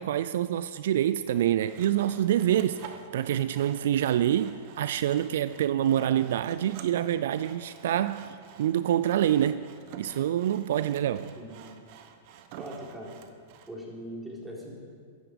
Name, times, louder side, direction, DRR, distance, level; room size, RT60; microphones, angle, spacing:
voice 1, 0.0-2.8 3.1-9.6 10.0-11.3, right 11 dB, 70° right, 14 dB, 0.4 m, -26 dB
Sawing, 1.3-13.7, right 8 dB, 55° right, 1.1 m, -49 dB
voice 2, 11.4-11.7 12.6-13.2 13.7-14.7, equal, 10° right, -3 dB, 3.8 m, -40 dB
14.0 x 10.5 x 5.2 m, 2.1 s
hypercardioid pair, 110°, 0 cm